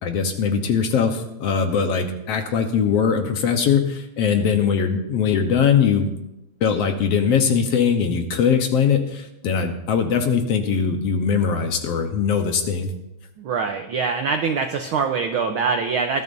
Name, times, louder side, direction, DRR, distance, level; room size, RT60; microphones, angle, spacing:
voice 1, 0.0-6.1 6.6-12.9, left 6 dB, 65° left, 5 dB, 1.9 m, -21 dB
voice 2, 13.4-16.2, right 5 dB, 80° right, 5 dB, 1.2 m, -23 dB
20.0 x 13.5 x 2.7 m, 0.87 s
omnidirectional pair, 3.3 m